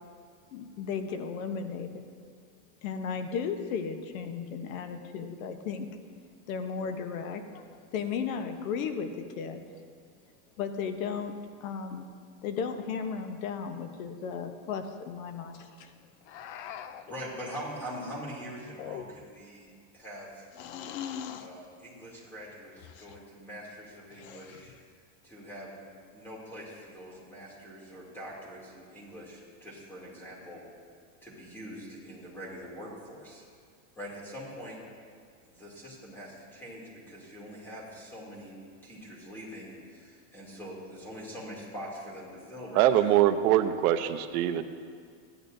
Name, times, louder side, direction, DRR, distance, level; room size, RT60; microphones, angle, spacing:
voice 1, 0.5-2.0 2.8-5.9 6.5-9.1 9.4-9.6 10.6-11.3 11.6-12.1 12.4-15.9 16.4-16.7, left 6 dB, 70° left, 7 dB, 1.0 m, -35 dB
sound 1, 16.3-17.2 18.7-19.4 20.5-21.5 22.8-23.2 24.1-24.8, left 9 dB, 40° left, 0.4 m, -41 dB
voice 2, 17.1-19.7 19.9-20.5 21.3-24.7 25.2-30.6 31.2-33.4 34.0-34.8 35.5-38.5 38.8-43.2, equal, 5° left, -5 dB, 2.5 m, -43 dB
voice 3, 42.7-44.6, right 12 dB, 80° right, 9 dB, 0.8 m, -23 dB
16.0 x 10.5 x 2.6 m, 2.2 s
supercardioid pair, 160°, 43 cm